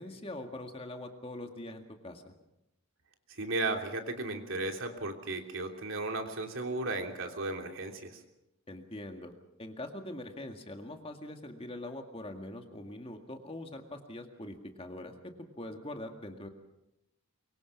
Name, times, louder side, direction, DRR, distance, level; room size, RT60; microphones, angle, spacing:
voice 1, 0.0-2.3 8.7-9.3 9.6-16.5, left 1 dB, 25° left, 5 dB, 2.0 m, -43 dB
voice 2, 3.3-8.2, right 2 dB, 60° right, 4 dB, 3.0 m, -35 dB
24.0 x 23.5 x 6.0 m, 0.90 s
head